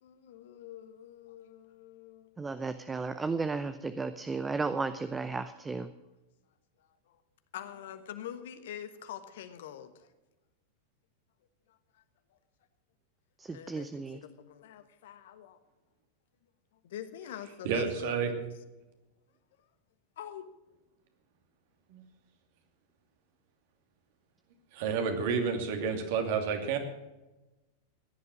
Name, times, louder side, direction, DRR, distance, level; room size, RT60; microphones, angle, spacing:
voice 1, 0.0-2.3 7.1-7.2 7.5-10.1 13.5-15.6 16.8-18.4 20.2-20.5, left 10 dB, 55° left, 10 dB, 1.3 m, -45 dB
voice 2, 2.4-5.9 13.4-14.2, right 4 dB, 15° right, 12 dB, 0.7 m, -34 dB
voice 3, 17.6-18.5 21.9-22.0 24.7-26.8, right 6 dB, 50° right, 5 dB, 2.6 m, -30 dB
16.0 x 11.0 x 6.3 m, 1.1 s
figure-of-eight pair, 90°, 0 cm